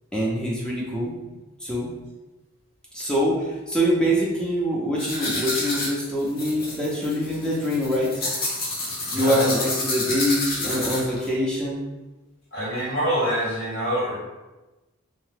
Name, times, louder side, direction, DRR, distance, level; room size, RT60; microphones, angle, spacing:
voice 1, 0.1-1.1 1.6-1.9 2.9-8.2 9.1-11.8, equal, 5° left, -5 dB, 0.5 m, -24 dB
sound 1, 5.0-11.3, left 2 dB, 45° left, 0.7 m, -29 dB
voice 2, 9.1-9.5 12.5-14.2, right 1 dB, 80° left, -7 dB, 1.4 m, -25 dB
2.8 x 2.2 x 3.2 m, 1.1 s
head